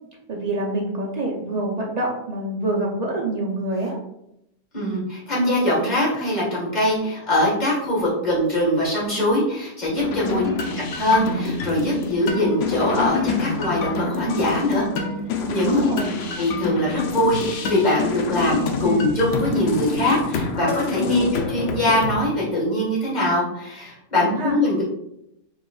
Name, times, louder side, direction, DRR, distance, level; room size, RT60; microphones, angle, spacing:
voice 1, 0.3-4.0 10.3-10.5 15.7-16.2 21.1-21.3 24.1-24.6, right 2 dB, 55° right, -2 dB, 0.4 m, -26 dB
voice 2, 4.7-10.4 10.7-14.9 15.5-15.8 16.4-24.8, left 1 dB, 30° left, -6 dB, 1.6 m, -22 dB
sound 1, 10.0-22.2, left 4 dB, 65° left, 0.7 m, -27 dB
4.7 x 4.0 x 2.3 m, 0.81 s
omnidirectional pair, 1.6 m